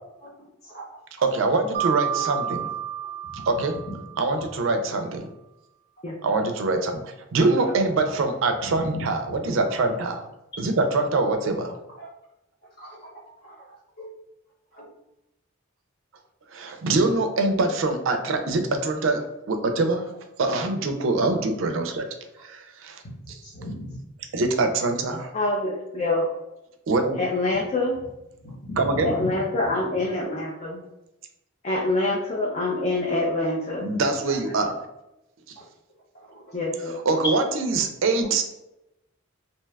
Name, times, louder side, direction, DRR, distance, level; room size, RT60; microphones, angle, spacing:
voice 1, 1.2-2.7 3.5-3.8 4.2-5.3 6.2-10.3 10.6-11.7 16.5-20.1 20.4-22.1 22.4-23.0 23.3-23.4 24.3-25.3 26.9-27.2 28.8-29.1 33.8-34.8 35.5-35.6 37.1-38.4, right 3 dB, 70° right, 6 dB, 0.4 m, -24 dB
Mallet percussion, 1.7-4.5, right 10 dB, 30° right, 0.6 m, -30 dB
voice 2, 8.9-9.3 12.0-12.1 12.8-13.0 13.5-14.1 14.7-14.8 21.2-21.3 23.4-24.0 28.4-29.3 34.3-34.4 36.5-36.6 37.2-37.3, equal, 50° left, -5 dB, 1.1 m, -35 dB
voice 3, 25.3-26.3 27.2-28.0 29.0-30.8 31.6-33.9 36.5-36.9, left 2 dB, 30° left, -3 dB, 0.4 m, -25 dB
2.7 x 2.2 x 3.3 m, 0.91 s
head